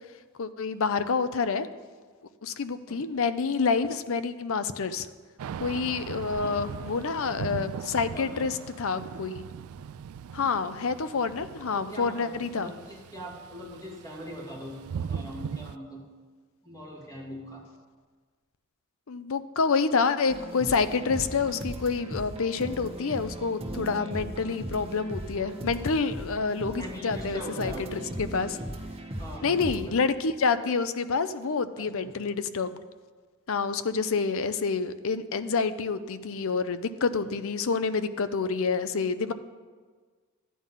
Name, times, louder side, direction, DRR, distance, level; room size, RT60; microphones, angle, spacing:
voice 1, 0.4-1.7 2.4-5.1 5.6-8.5 8.8-9.5 10.3-12.7 19.1-28.6 29.4-32.8 33.5-39.3, left 4 dB, 65° left, 12 dB, 0.6 m, -28 dB
Thunder / Rain, 5.4-15.8, right 7 dB, 70° right, 0.3 m, -39 dB
voice 2, 8.1-8.4 11.7-16.0 16.6-17.7 26.8-27.9 29.2-29.9 31.8-32.1 37.1-37.3, equal, 15° left, -3 dB, 2.8 m, -42 dB
sound 1, 20.3-29.8, right 1 dB, 25° right, 1.3 m, -38 dB
12.5 x 9.4 x 5.7 m, 1.5 s
head